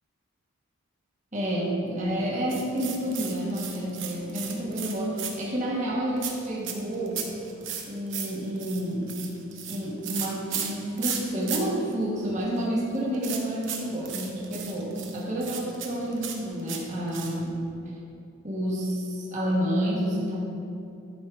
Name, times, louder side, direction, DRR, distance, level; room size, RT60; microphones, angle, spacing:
voice 1, 1.3-7.3 7.8-9.1 9.7-17.6 18.4-20.3, equal, 35° right, -6 dB, 1.2 m, -29 dB
sound 1, 2.5-5.6 6.2-11.6 11.8-11.9 12.3-17.5, right 8 dB, 60° right, 0.8 m, -35 dB
11.0 x 3.7 x 4.6 m, 2.7 s
head